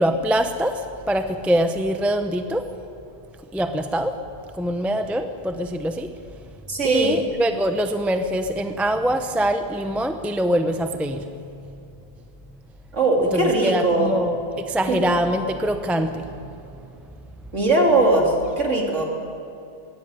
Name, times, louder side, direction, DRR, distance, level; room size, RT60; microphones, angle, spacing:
voice 1, 0.0-2.7 3.5-4.2 4.6-6.1 6.8-11.3 13.3-16.3, equal, ahead, 7 dB, 0.6 m, -24 dB
voice 2, 6.7-7.1 12.9-14.1 14.9-15.0 17.5-19.0, right 2 dB, 45° right, 1 dB, 3.5 m, -20 dB
21.5 x 16.5 x 9.2 m, 2.7 s
omnidirectional pair, 1.8 m